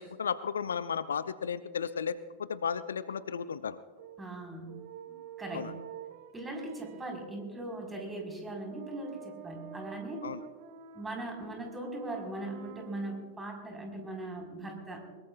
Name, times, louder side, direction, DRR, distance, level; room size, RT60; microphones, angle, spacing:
voice 1, 0.0-3.8 5.5-5.7 10.2-10.4, left 7 dB, 70° left, 16 dB, 0.4 m, -34 dB
sound 1, 4.0-13.4, right 8 dB, 50° right, 1.4 m, -49 dB
voice 2, 4.2-4.8 5.1-5.7 6.3-10.3 10.9-15.0, right 2 dB, 10° right, 1 dB, 4.3 m, -40 dB
22.5 x 21.0 x 2.4 m, 1.5 s
figure-of-eight pair, 90°, 0 cm